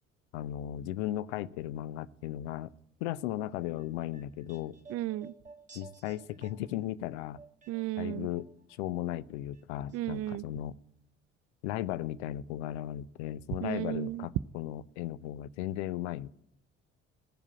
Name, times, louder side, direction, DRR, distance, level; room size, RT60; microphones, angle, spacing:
voice 1, 0.3-2.7 3.0-4.8 5.7-7.4 8.0-10.8 11.6-16.3, left 13 dB, 65° left, 18 dB, 0.6 m, -36 dB
sound 1, 3.5-8.8 9.0-10.0 10.2-10.3, right 4 dB, 20° right, 2.0 m, -55 dB
voice 2, 4.9-5.3 7.7-8.3 9.9-10.4 13.6-14.3, right 16 dB, 40° right, 19 dB, 0.4 m, -34 dB
16.0 x 7.2 x 8.4 m, 0.76 s
figure-of-eight pair, 50°, 36 cm